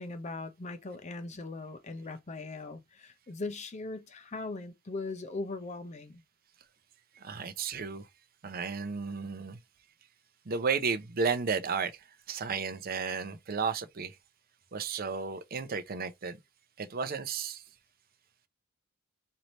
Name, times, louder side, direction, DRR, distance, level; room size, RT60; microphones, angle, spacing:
voice 1, 0.0-6.2, left 3 dB, 35° left, 0.5 m, -39 dB
voice 2, 7.1-8.1 8.4-9.6 10.5-14.2 14.7-16.4 16.8-17.6, right 5 dB, 45° right, 0.5 m, -33 dB
3.2 x 2.7 x 4.1 m
head